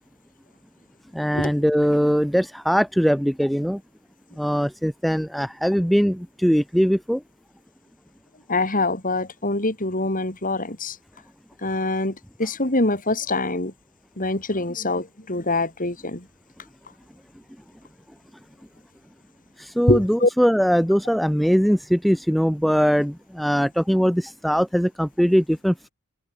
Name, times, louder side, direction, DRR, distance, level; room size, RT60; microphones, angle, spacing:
voice 1, 1.1-3.8 4.4-7.2 19.6-25.9, equal, ahead, 0.5 m, -21 dB
voice 2, 8.5-11.0 11.6-13.7 14.2-16.2 19.9-20.3, left 2 dB, 40° left, 4.5 m, -24 dB
head